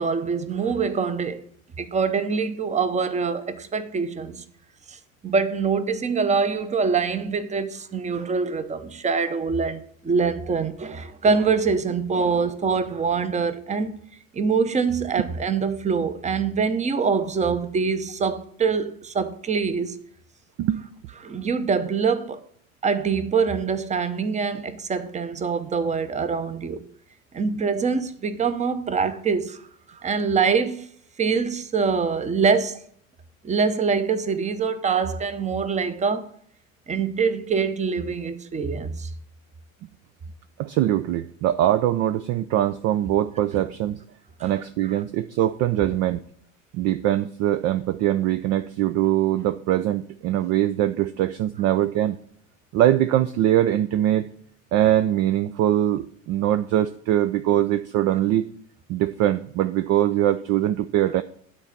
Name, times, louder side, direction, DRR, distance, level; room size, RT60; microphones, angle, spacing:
voice 1, 0.0-1.4 1.8-4.4 4.9-14.0 14.3-20.0 21.2-22.4 22.8-26.8 27.3-29.6 29.9-30.9 31.2-32.8 33.4-36.3 36.9-39.1 44.4-44.5, right 5 dB, 15° right, 0.8 m, -24 dB
voice 2, 40.6-44.0 44.4-46.2 46.7-52.2 52.7-54.3 54.7-58.5 58.9-61.2, right 12 dB, 40° right, 0.4 m, -22 dB
9.8 x 4.1 x 7.1 m
hypercardioid pair, 80°, 42 cm